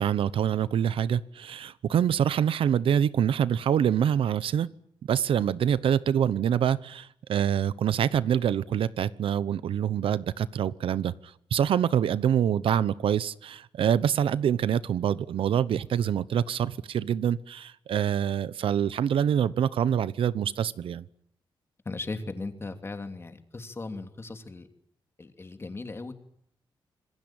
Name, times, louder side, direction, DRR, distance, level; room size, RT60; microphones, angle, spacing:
voice 1, 0.0-4.7 5.1-21.0, right 9 dB, 85° right, 17 dB, 1.0 m, -25 dB
voice 2, 21.8-24.7 25.2-26.1, left 3 dB, 30° left, 7 dB, 2.9 m, -37 dB
26.5 x 21.0 x 9.0 m, 0.69 s
wide cardioid pair, 120°, 9 cm